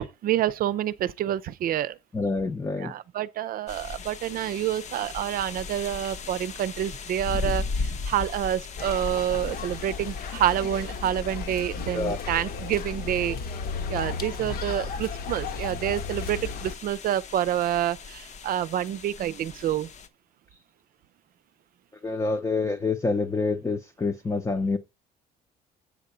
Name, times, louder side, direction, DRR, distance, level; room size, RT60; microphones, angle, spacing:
voice 1, 0.0-2.0 2.8-13.4 13.9-19.9, right 11 dB, 60° right, 0.6 m, -28 dB
voice 2, 2.1-2.9 11.9-12.2 22.0-24.8, left 3 dB, 20° left, 0.8 m, -27 dB
sound 1, 3.7-20.1, left 4 dB, 45° left, 0.9 m, -38 dB
sound 2, 8.8-16.7, left 5 dB, 60° left, 1.2 m, -34 dB
8.2 x 3.7 x 6.7 m
cardioid pair, 110°, 17 cm